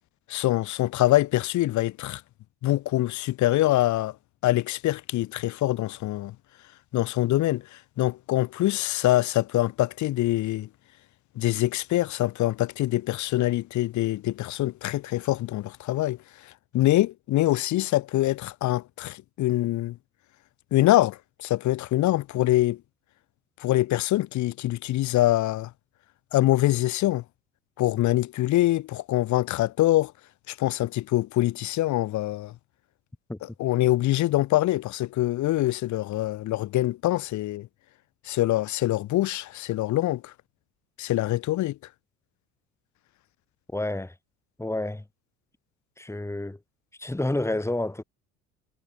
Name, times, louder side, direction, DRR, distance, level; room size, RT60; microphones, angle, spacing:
voice 1, 0.3-2.2 2.6-4.2 4.4-6.4 6.9-10.7 11.4-16.2 16.4-20.0 20.7-22.8 23.6-25.7 26.3-27.2 27.8-30.1 30.5-32.5 33.4-37.7 38.3-40.3 41.0-41.8, left 16 dB, 50° left, 1.9 m, -24 dB
voice 2, 43.7-44.1 44.6-45.0 46.0-46.6 47.0-48.0, left 1 dB, 5° left, 5.0 m, -29 dB
figure-of-eight pair, 60°, 38 cm